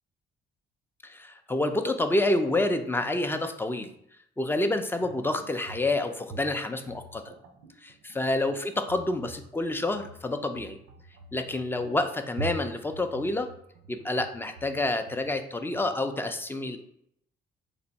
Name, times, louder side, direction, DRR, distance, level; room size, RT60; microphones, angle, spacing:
voice 1, 1.0-3.9 4.4-7.3 7.8-10.8 11.3-13.5 13.9-16.8, left 2 dB, 10° left, 7 dB, 0.4 m, -28 dB
sound 1, 4.9-15.9, right 4 dB, 90° right, 0.5 m, -45 dB
3.3 x 2.7 x 3.9 m, 0.73 s
cardioid pair, 90°, 20 cm